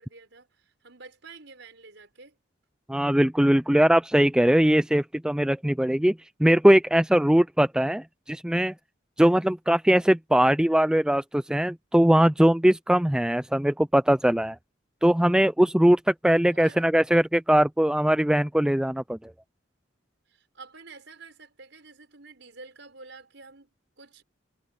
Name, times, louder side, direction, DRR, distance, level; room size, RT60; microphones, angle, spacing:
voice 1, 0.0-2.4 16.5-16.9 20.3-24.2, right 4 dB, 65° right, 6.5 m, -49 dB
voice 2, 2.9-6.2 6.4-8.7 9.2-14.6 15.0-19.3, right 1 dB, 5° right, 0.3 m, -21 dB
head